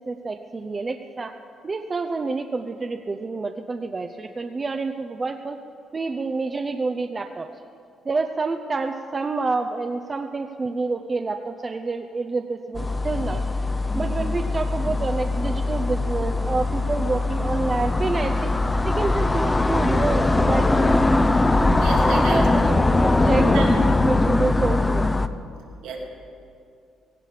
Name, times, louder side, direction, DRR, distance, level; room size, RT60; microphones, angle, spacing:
voice 1, 0.1-1.3 1.6-5.6 5.9-7.5 8.0-13.4 13.9-18.5 18.8-21.0 22.1-25.1, right 3 dB, 30° right, 5 dB, 0.7 m, -28 dB
sound 1, 12.7-25.3, left 2 dB, 15° left, 0.7 m, -21 dB
voice 2, 21.7-22.4 23.2-23.6 25.8-26.0, right 5 dB, 85° right, 0 dB, 2.4 m, -31 dB
17.0 x 16.0 x 5.0 m, 2.5 s
cardioid pair, 90°, 0 cm